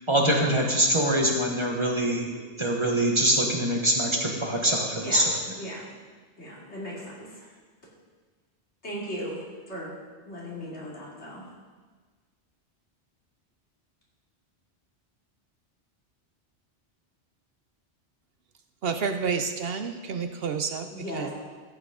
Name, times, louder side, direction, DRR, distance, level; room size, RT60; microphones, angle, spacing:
voice 1, 0.1-5.3, right 1 dB, 25° right, 0 dB, 1.2 m, -24 dB
voice 2, 5.6-5.9 6.4-7.4 8.8-9.4 9.7-9.9 10.3-11.5 20.9-21.3, equal, 75° left, -6 dB, 3.1 m, -37 dB
voice 3, 18.8-21.3, right 6 dB, 65° right, 7 dB, 0.8 m, -30 dB
13.5 x 8.2 x 3.7 m, 1.4 s
omnidirectional pair, 1.2 m